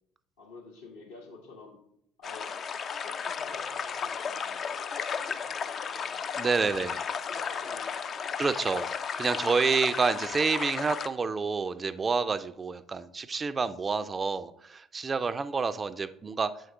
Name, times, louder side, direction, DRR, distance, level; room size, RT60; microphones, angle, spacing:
voice 1, 0.4-1.8 2.2-6.3 6.7-8.5, left 4 dB, 75° left, -2 dB, 1.6 m, -50 dB
sound 1, 2.2-11.1, left 6 dB, 40° left, 0.4 m, -34 dB
voice 2, 6.4-6.9 8.4-8.9 9.2-16.5, right 4 dB, 25° right, 12 dB, 0.4 m, -28 dB
7.6 x 4.7 x 3.5 m, 0.71 s
figure-of-eight pair, 60°, 0 cm